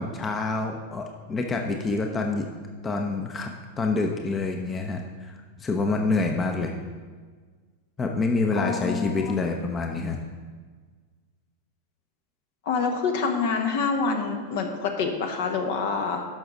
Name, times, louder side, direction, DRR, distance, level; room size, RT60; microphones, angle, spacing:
voice 1, 0.0-2.5 2.8-3.5 3.8-6.7 8.0-10.2, left 3 dB, 20° left, 3 dB, 0.8 m, -27 dB
voice 2, 8.5-9.3 12.6-16.2, left 5 dB, 50° left, 4 dB, 1.2 m, -26 dB
12.0 x 5.9 x 3.9 m, 1.5 s
figure-of-eight pair, 90°, 0 cm